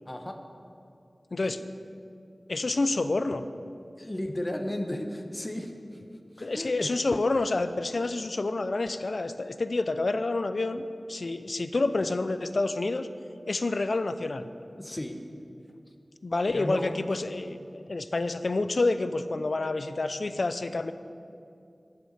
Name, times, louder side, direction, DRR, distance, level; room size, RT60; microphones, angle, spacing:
voice 1, 0.1-0.4 1.4-1.5 4.0-6.0 6.3-7.0 14.8-15.2 16.5-16.9, left 1 dB, 25° left, 4 dB, 1.2 m, -34 dB
voice 2, 2.5-3.4 6.4-13.1 13.5-14.5 16.2-20.9, left 2 dB, 70° left, 11 dB, 0.6 m, -28 dB
11.5 x 6.7 x 9.2 m, 2.5 s
wide cardioid pair, 55°, 0 cm